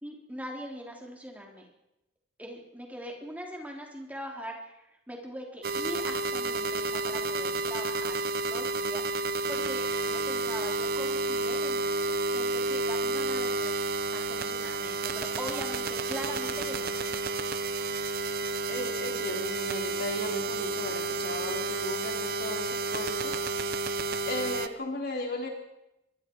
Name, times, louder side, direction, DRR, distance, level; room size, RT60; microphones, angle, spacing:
voice 1, 0.0-1.7 2.4-8.2 8.5-9.1 9.5-13.8 14.1-16.9, equal, 10° right, 0 dB, 3.7 m, -41 dB
sound 1, 5.6-24.7, right 3 dB, 50° right, 0.9 m, -31 dB
voice 2, 18.7-23.4 24.2-25.5, left 1 dB, 50° left, 1 dB, 4.2 m, -36 dB
26.5 x 22.5 x 4.8 m, 0.90 s
head